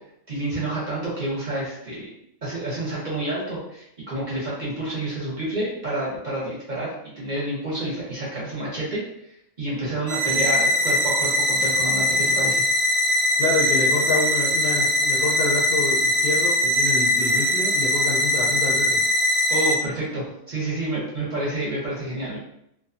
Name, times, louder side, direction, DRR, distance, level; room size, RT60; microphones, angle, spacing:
voice 1, 0.3-2.1 2.4-9.0 9.6-12.6 19.5-22.4, right 1 dB, 40° right, -7 dB, 0.8 m, -29 dB
sound 1, 10.1-19.8, left 1 dB, 85° right, 1.0 m, -21 dB
voice 2, 13.4-19.0, left 3 dB, 60° left, -6 dB, 0.6 m, -27 dB
2.5 x 2.3 x 2.5 m, 0.77 s
omnidirectional pair, 1.4 m